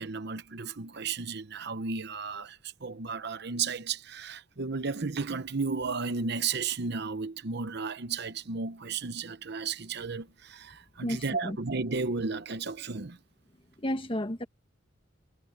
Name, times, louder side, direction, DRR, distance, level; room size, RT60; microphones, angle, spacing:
voice 1, 0.0-13.2, right 4 dB, 60° right, 0.9 m, -34 dB
voice 2, 11.0-11.6 13.8-14.5, left 1 dB, 30° left, 1.4 m, -32 dB
head